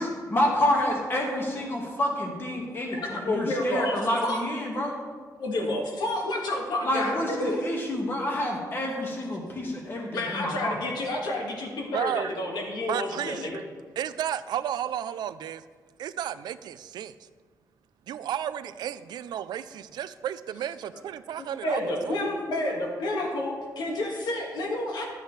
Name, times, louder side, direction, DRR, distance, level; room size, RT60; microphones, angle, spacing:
voice 1, 0.0-4.9 6.8-10.8, left 1 dB, 30° left, 0 dB, 1.6 m, -28 dB
voice 2, 2.9-4.4 5.4-7.6 10.1-13.6 20.9-21.0 21.4-25.0, left 1 dB, 80° left, 0 dB, 1.7 m, -30 dB
voice 3, 11.9-12.3 12.9-13.6 14.0-15.6 16.0-17.1 18.1-22.2, right 10 dB, 85° right, 13 dB, 0.3 m, -33 dB
11.5 x 8.1 x 3.2 m, 1.5 s
wide cardioid pair, 145°, 7 cm